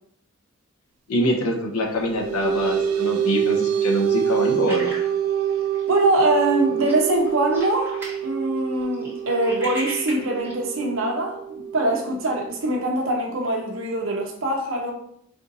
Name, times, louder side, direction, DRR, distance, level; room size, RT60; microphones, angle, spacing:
voice 1, 1.1-5.0, left 1 dB, 85° left, 1 dB, 0.9 m, -25 dB
sound 1, 1.8-12.8, right 9 dB, 85° right, 0.5 m, -26 dB
sound 2, 4.7-6.0 6.4-6.5 6.8-8.2 8.6-10.6, right 1 dB, 10° right, 1.0 m, -36 dB
voice 2, 5.9-8.0 8.2-11.4 11.7-14.9, right 2 dB, 60° right, 0 dB, 0.9 m, -23 dB
4.4 x 2.6 x 4.0 m, 0.69 s
head